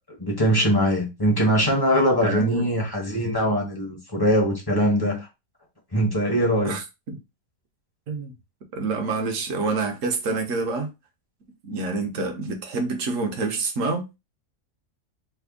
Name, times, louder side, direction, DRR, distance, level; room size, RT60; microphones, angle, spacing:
voice 1, 0.1-5.3 5.9-6.8, equal, 20° left, 0.6 m, -22 dB
voice 2, 2.2-2.7 6.6-7.2 8.1-8.3 8.7-10.9 11.6-14.1, right 3 dB, 60° right, 1.0 m, -27 dB
3.4 x 2.2 x 3.5 m
omnidirectional pair, 1.7 m